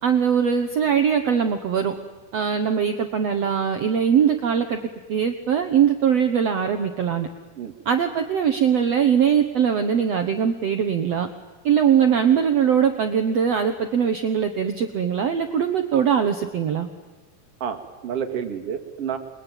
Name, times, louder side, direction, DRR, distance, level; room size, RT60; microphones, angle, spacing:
voice 1, 0.0-1.9 2.3-4.8 5.1-7.3 7.8-11.3 11.6-16.9, right 8 dB, 70° right, 7 dB, 1.5 m, -21 dB
voice 2, 17.6-19.2, right 7 dB, 40° right, 5 dB, 2.8 m, -29 dB
28.5 x 22.5 x 9.2 m, 1.3 s
omnidirectional pair, 4.7 m